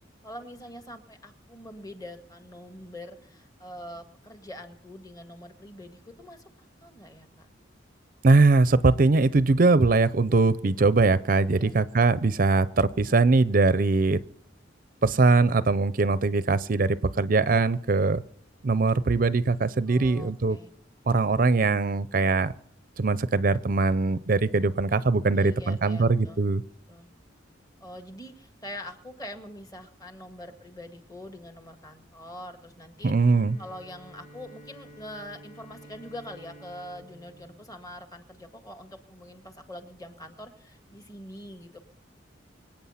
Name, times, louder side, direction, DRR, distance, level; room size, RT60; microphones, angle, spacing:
voice 1, 0.2-6.5 6.8-7.5 11.5-11.8 19.8-20.7 25.3-26.4 26.9-27.1 27.8-41.8, left 1 dB, 20° left, 7 dB, 1.7 m, -44 dB
voice 2, 8.2-14.2 15.0-18.2 18.6-20.6 21.1-22.5 23.0-26.6 33.0-33.6, right 3 dB, 45° right, 16 dB, 0.5 m, -21 dB
Bowed string instrument, 33.0-38.7, equal, 40° left, 5.4 m, -51 dB
25.0 x 8.9 x 5.7 m, 0.69 s
head